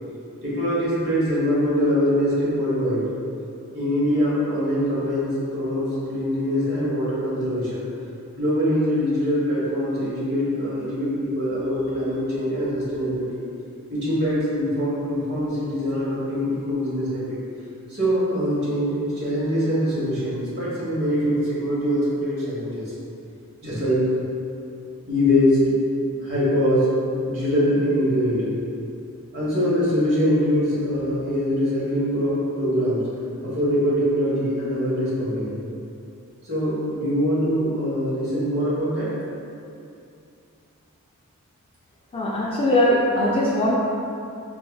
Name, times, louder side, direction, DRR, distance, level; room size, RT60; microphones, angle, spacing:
voice 1, 0.4-3.0 3.7-7.9 8.4-13.4 13.9-17.4 17.9-22.9 23.6-24.1 25.1-25.8 26.2-26.9 27.2-28.6 29.3-33.1 33.4-35.6 36.4-39.1, equal, 50° right, -8 dB, 1.1 m, -23 dB
voice 2, 42.1-43.8, left 1 dB, 25° left, -4 dB, 0.3 m, -20 dB
3.4 x 3.4 x 2.2 m, 2.6 s
head